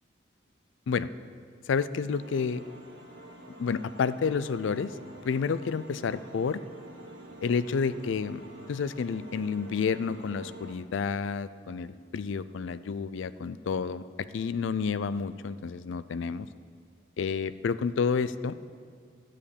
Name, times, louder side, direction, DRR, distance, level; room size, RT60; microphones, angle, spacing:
voice 1, 1.7-2.7 3.6-5.0 5.2-6.6 7.4-8.4 8.7-16.5 17.2-18.5, left 5 dB, 75° left, 15 dB, 0.4 m, -30 dB
sound 1, 2.1-10.7, right 1 dB, 75° right, 1.8 m, -48 dB
12.0 x 5.1 x 8.5 m, 2.2 s
head